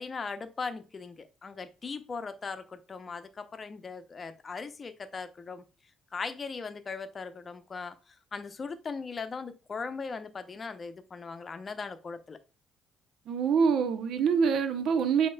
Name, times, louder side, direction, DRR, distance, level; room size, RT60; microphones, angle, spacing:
voice 1, 0.0-5.6 6.1-12.4, left 4 dB, 40° left, 0.7 m, -39 dB
voice 2, 13.3-15.3, right 6 dB, 65° right, 0.7 m, -25 dB
8.3 x 2.8 x 2.3 m
hypercardioid pair, 50°, 0 cm